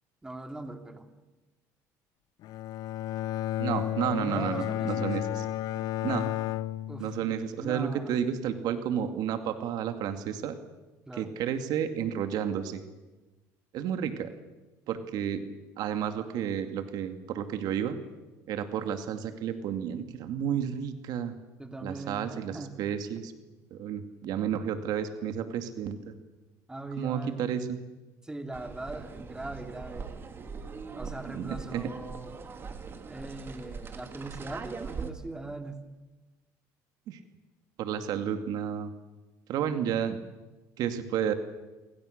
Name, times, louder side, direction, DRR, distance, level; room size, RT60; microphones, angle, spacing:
voice 1, 0.2-1.1 4.2-5.1 6.9-7.3 7.6-8.1 11.1-11.3 21.6-22.3 22.5-22.8 26.7-27.5 28.2-30.1 30.9-32.3 33.1-35.8 39.6-39.8, right 2 dB, 10° right, 6 dB, 2.7 m, -40 dB
Bowed string instrument, 2.4-7.7, left 13 dB, 65° left, 0.9 m, -32 dB
voice 2, 3.6-5.5 6.0-6.3 7.0-10.6 11.1-12.8 13.7-14.3 14.9-15.5 15.8-18.0 18.5-21.4 21.8-23.3 23.7-26.1 27.0-27.8 31.3-31.9 37.1-37.2 37.8-38.9 39.5-40.2 40.8-41.3, right 9 dB, 65° right, 8 dB, 2.2 m, -31 dB
sound 1, 28.5-35.1, right 5 dB, 30° right, 2.8 m, -41 dB
28.5 x 23.5 x 6.7 m, 1.2 s
cardioid pair, 110°, 7 cm